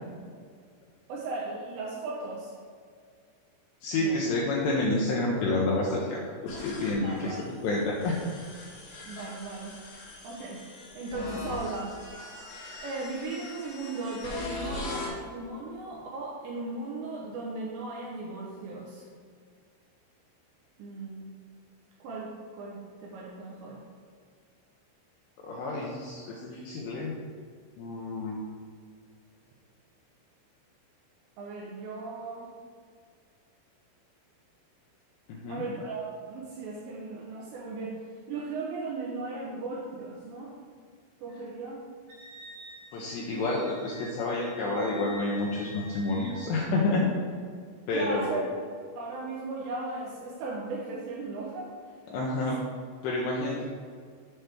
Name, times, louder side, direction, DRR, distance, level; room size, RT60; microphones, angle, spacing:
voice 1, 1.1-2.6 4.0-4.2 7.0-7.4 9.1-9.8 10.2-10.6 10.9-11.9 12.8-19.1 20.8-21.3 22.0-23.8 31.4-32.5 35.5-38.0 38.3-40.6 41.2-41.8 47.9-48.4 49.0-51.7, right 3 dB, 85° right, -3 dB, 2.6 m, -37 dB
voice 2, 3.8-8.1 25.4-27.1 27.8-28.4 35.3-35.7 42.9-47.1 47.9-48.4 52.1-52.6 53.0-53.6, left 2 dB, 90° left, -4 dB, 2.5 m, -29 dB
sound 1, 6.5-15.1, left 2 dB, 60° left, 2.3 m, -41 dB
Wind instrument woodwind instrument, 42.1-46.6, left 1 dB, 65° right, 3.9 m, -47 dB
7.9 x 3.3 x 6.0 m, 2.1 s
omnidirectional pair, 5.8 m